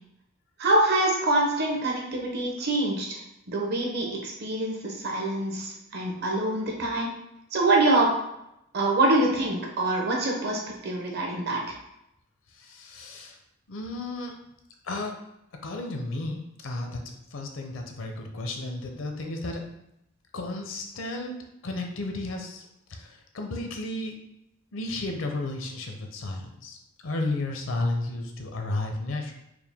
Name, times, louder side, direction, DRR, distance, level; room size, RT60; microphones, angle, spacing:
voice 1, 0.6-3.1 3.5-7.1 7.5-8.2 8.7-11.8, right 2 dB, 50° right, -1 dB, 0.8 m, -25 dB
voice 2, 12.5-13.4 13.7-14.4 14.8-15.2 15.6-17.0 17.3-19.6 20.3-24.2 24.7-26.8 27.0-29.3, left 2 dB, 70° left, 3 dB, 0.6 m, -33 dB
4.7 x 2.1 x 3.5 m, 0.83 s
head